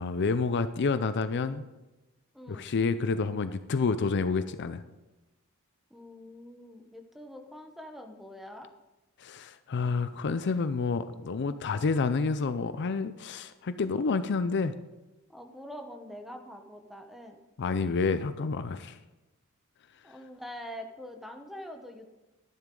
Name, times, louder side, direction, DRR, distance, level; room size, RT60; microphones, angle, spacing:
voice 1, 0.0-1.7 2.5-4.8 9.2-14.7 17.6-19.0, left 4 dB, 55° left, 12 dB, 0.5 m, -29 dB
voice 2, 2.3-2.7 5.9-8.7 15.3-17.4 20.0-22.1, equal, ahead, 4 dB, 1.1 m, -44 dB
12.0 x 10.5 x 3.8 m, 1.1 s
head